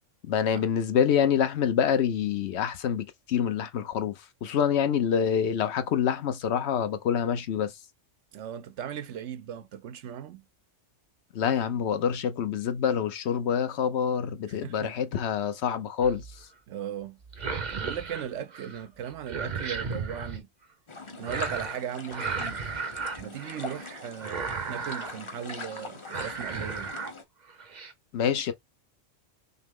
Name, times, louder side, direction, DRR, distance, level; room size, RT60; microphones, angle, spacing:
voice 1, 0.3-7.8 11.3-16.5 28.1-28.5, left 8 dB, 65° left, 0.9 m, -26 dB
voice 2, 8.3-10.4 14.5-14.9 16.7-20.5 21.2-22.7 23.2-26.9, right 9 dB, 75° right, 0.9 m, -38 dB
sound 1, 16.0-16.4 17.2-18.8 19.1-20.4 21.2-21.8 22.1-23.9 24.2-25.2 25.6-25.8 26.1-27.1 27.5-27.9, right 5 dB, 40° right, 0.8 m, -35 dB
sound 2, 20.9-27.2, left 3 dB, 30° left, 0.7 m, -42 dB
5.8 x 2.0 x 3.6 m
omnidirectional pair, 1.3 m